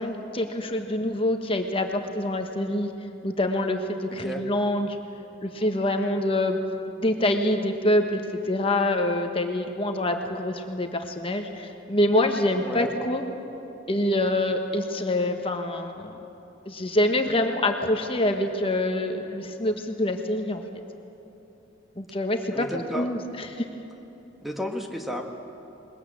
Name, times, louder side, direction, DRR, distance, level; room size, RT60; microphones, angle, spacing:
voice 1, 0.0-2.9 3.2-5.0 5.4-6.6 7.0-13.2 13.9-16.2 16.6-20.6 21.9-22.7 22.9-23.6, left 1 dB, 30° left, 5 dB, 1.4 m, -25 dB
voice 2, 12.6-12.9 22.5-23.1 24.4-25.2, equal, ahead, 3 dB, 1.5 m, -32 dB
21.5 x 20.0 x 8.7 m, 3.0 s
head